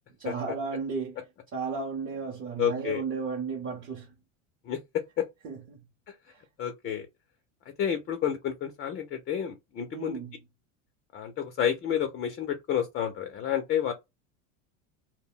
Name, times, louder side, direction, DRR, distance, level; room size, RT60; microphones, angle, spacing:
voice 1, 0.2-1.2 1.5-4.1 5.4-5.8 6.3-6.4 9.9-10.4, right 5 dB, 30° right, 0.6 m, -34 dB
voice 2, 2.6-3.0 4.6-4.8 5.2-5.3 6.1-6.2 6.6-7.1 7.8-10.2 11.1-13.9, left 9 dB, 30° left, 0.3 m, -30 dB
2.2 x 2.0 x 3.6 m
supercardioid pair, 120°, 40 cm